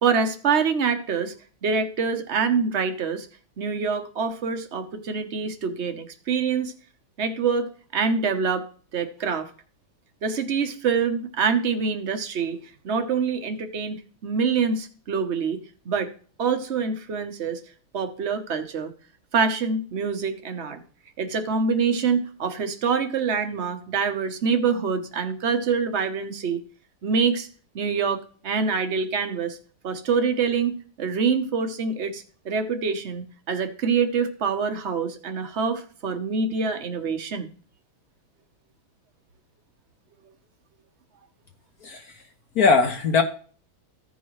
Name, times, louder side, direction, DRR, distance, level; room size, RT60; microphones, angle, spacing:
voice 1, 0.0-1.3 1.6-3.3 3.6-6.7 7.2-8.6 8.9-9.5 10.2-12.6 12.8-16.1 16.4-17.6 17.9-18.9 19.3-20.8 21.2-26.6 27.0-27.5 27.7-29.6 29.8-37.5, right 5 dB, 45° right, 7 dB, 0.9 m, -25 dB
voice 2, 41.8-42.2 42.5-43.2, left 4 dB, 60° left, 5 dB, 1.0 m, -20 dB
15.0 x 5.4 x 3.1 m, 0.42 s
omnidirectional pair, 2.4 m